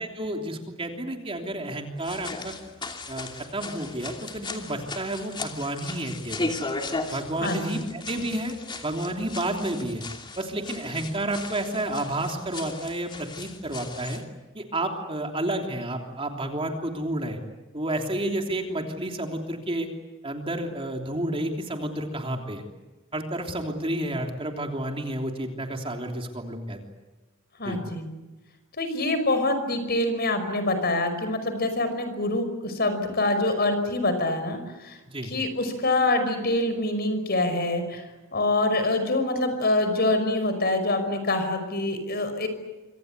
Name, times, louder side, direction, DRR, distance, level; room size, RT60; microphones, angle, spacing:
voice 1, 0.0-2.5 3.1-6.5 7.1-8.5 8.8-10.0 10.4-14.2 14.5-17.4 17.7-19.9 20.2-22.6 23.1-26.8 27.6-27.8 35.1-35.3, right 1 dB, 25° right, 3 dB, 3.2 m, -30 dB
sound 1, 2.0-14.2, left 3 dB, 20° left, 2.8 m, -37 dB
voice 2, 7.4-7.8 27.6-28.1 28.8-35.0 35.2-38.0 38.3-42.5, left 2 dB, 45° left, 9 dB, 5.5 m, -25 dB
26.0 x 26.0 x 8.2 m, 1.1 s
head